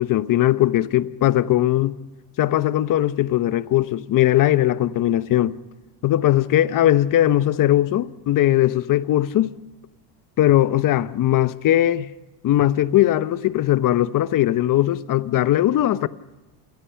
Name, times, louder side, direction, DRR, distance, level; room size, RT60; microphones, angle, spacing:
voice 1, 0.0-2.0 2.4-5.6 6.0-9.5 10.4-12.1 12.4-16.1, left 13 dB, 45° left, 1.0 m, -19 dB
28.5 x 19.0 x 5.8 m
supercardioid pair, 120°, 46 cm